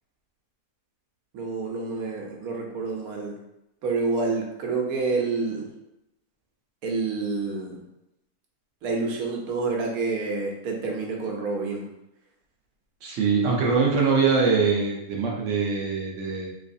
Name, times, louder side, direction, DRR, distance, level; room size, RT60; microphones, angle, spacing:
voice 1, 1.3-3.4 3.8-5.7 6.8-7.8 8.8-11.9, right 3 dB, 80° right, 0 dB, 1.2 m, -28 dB
voice 2, 13.0-16.5, right 5 dB, 65° right, -1 dB, 0.9 m, -23 dB
3.1 x 3.1 x 2.6 m, 0.90 s
omnidirectional pair, 1.5 m